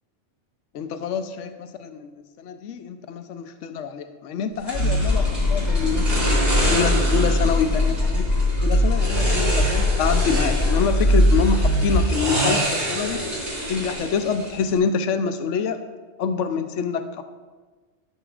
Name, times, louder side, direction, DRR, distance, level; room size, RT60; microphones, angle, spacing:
voice 1, 0.7-8.3 8.6-13.3 13.7-15.8 16.2-17.2, left 5 dB, 75° left, 9 dB, 1.0 m, -26 dB
sound 1, 4.7-12.1, left 1 dB, 40° left, 1.0 m, -21 dB
sound 2, 4.7-14.8, right 1 dB, 50° right, 3.7 m, -28 dB
12.0 x 12.0 x 2.5 m, 1.4 s
omnidirectional pair, 1.3 m